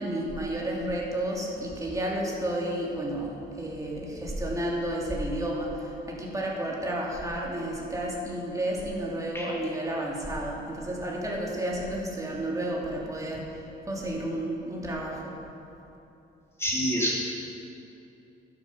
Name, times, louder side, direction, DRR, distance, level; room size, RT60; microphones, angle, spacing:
voice 1, 0.0-15.3, right 1 dB, 15° right, -3 dB, 2.7 m, -31 dB
voice 2, 16.6-17.2, equal, 15° left, -5 dB, 3.0 m, -27 dB
11.5 x 7.8 x 6.0 m, 2.9 s
cardioid pair, 90°, 20 cm